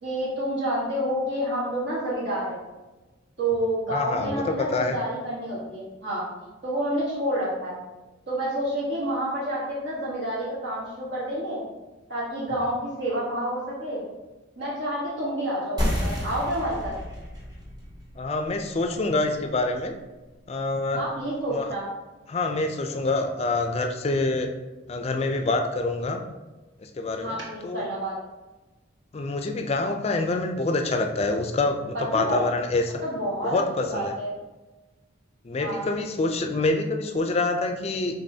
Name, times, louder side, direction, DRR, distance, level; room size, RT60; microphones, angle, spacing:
voice 1, 0.0-2.6 3.4-6.3 6.6-7.8 8.3-11.6 12.1-14.0 14.6-16.9 20.9-21.9 27.2-28.1 31.9-32.5 33.0-34.3 35.6-35.9, right 1 dB, 65° right, -7 dB, 1.4 m, -29 dB
voice 2, 3.9-5.0 18.2-20.0 20.5-21.0 21.5-21.7 22.3-24.5 24.9-26.2 26.8-27.4 27.6-27.9 29.1-33.0 33.4-34.1 35.4-38.1, left 2 dB, 30° left, 5 dB, 0.4 m, -26 dB
sound 1, 15.8-20.9, equal, 20° right, 0.9 m, -33 dB
5.3 x 3.5 x 2.7 m, 1.1 s
head